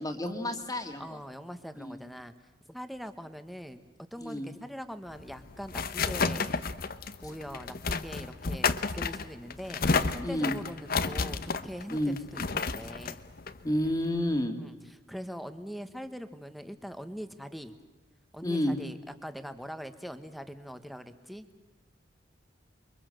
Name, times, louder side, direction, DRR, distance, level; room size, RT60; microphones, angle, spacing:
voice 1, 0.0-1.2 1.8-2.0 4.2-4.5 10.2-10.6 11.9-12.2 13.6-14.6 18.4-18.8, left 1 dB, 20° left, 4 dB, 2.1 m, -30 dB
voice 2, 1.0-2.3 2.7-3.8 4.1-6.6 7.2-13.2 14.6-14.7 15.1-17.7 18.3-21.5, equal, ahead, 9 dB, 1.3 m, -42 dB
sound 1, 5.1-14.4, left 4 dB, 55° left, 0.9 m, -32 dB
29.0 x 23.5 x 7.8 m, 1.1 s
head